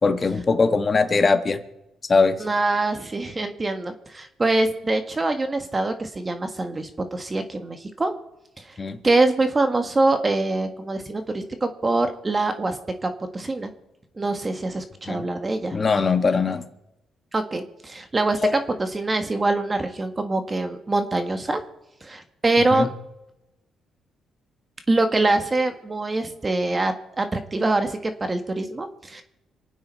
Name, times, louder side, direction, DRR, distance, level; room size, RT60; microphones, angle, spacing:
voice 1, 0.0-1.6 2.1-2.4 8.8-9.0 15.1-15.2 15.7-16.7 18.4-18.6 22.7-22.9, left 4 dB, 35° left, 8 dB, 1.5 m, -21 dB
voice 2, 2.4-8.1 8.6-8.8 9.0-13.7 14.1-15.8 17.3-21.6 22.0-22.9 24.9-29.2, right 2 dB, 25° right, 7 dB, 1.5 m, -24 dB
27.0 x 9.3 x 4.6 m, 0.91 s
cardioid pair, 90°, 0 cm